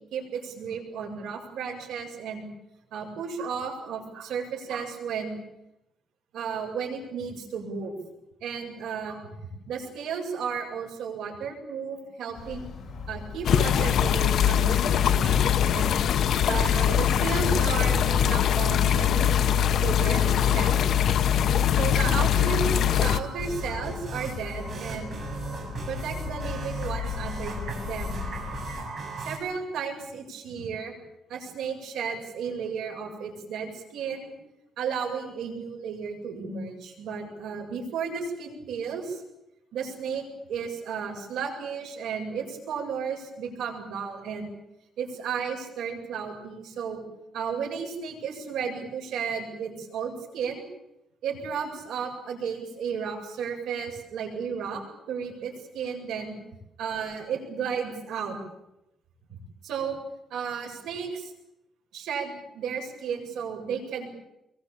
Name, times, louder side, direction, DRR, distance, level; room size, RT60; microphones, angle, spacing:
voice 1, 0.1-2.5 2.9-5.4 6.3-7.9 8.4-9.3 9.7-16.0 16.5-19.5 19.7-21.0 21.7-25.2 25.9-28.2 29.2-31.0 31.3-34.3 34.8-39.2 39.7-44.5 45.0-47.0 47.3-50.6 51.2-54.8 55.1-56.4 56.8-58.4 59.3-59.4 59.6-60.0 60.3-61.3 61.9-64.1, right 6 dB, 85° right, 1 dB, 7.9 m, -33 dB
sound 1, 12.3-28.8, left 5 dB, 40° left, 4.7 m, -38 dB
sound 2, 13.4-23.2, left 9 dB, 60° left, 0.9 m, -22 dB
sound 3, 22.5-29.4, right 3 dB, 40° right, 7.7 m, -38 dB
24.5 x 23.0 x 8.7 m, 0.86 s
cardioid pair, 140°, 0 cm